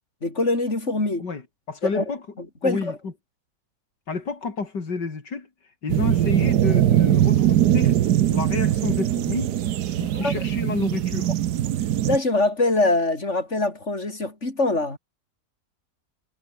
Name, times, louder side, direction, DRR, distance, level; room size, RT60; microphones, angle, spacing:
voice 1, 0.2-1.3 1.8-2.1 2.4-3.0 10.1-10.3 12.1-15.0, left 2 dB, 40° left, 5.7 m, -23 dB
voice 2, 1.7-2.2 2.6-3.1 4.1-5.5 5.8-8.0 8.3-9.5 10.0-11.3, left 4 dB, 85° left, 3.8 m, -30 dB
sound 1, 5.9-12.2, right 11 dB, 75° right, 1.4 m, -21 dB
omnidirectional pair, 1.8 m